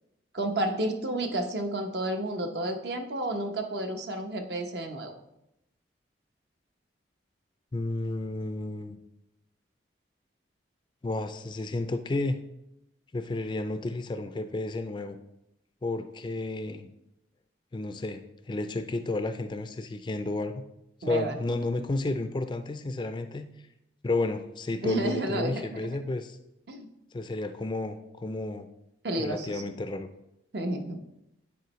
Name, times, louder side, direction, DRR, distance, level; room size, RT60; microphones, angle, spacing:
voice 1, 0.3-5.1 21.0-21.4 24.8-26.0 26.7-26.9 29.0-29.6 30.5-31.0, right 1 dB, 65° right, 5 dB, 0.8 m, -31 dB
voice 2, 7.7-9.0 11.0-12.4 13.1-15.2 15.8-16.9 17.7-18.2 18.5-20.6 21.0-23.5 24.0-26.4 27.1-28.7 29.2-30.1, left 2 dB, 25° left, 9 dB, 0.3 m, -31 dB
9.3 x 4.3 x 3.1 m, 0.84 s
head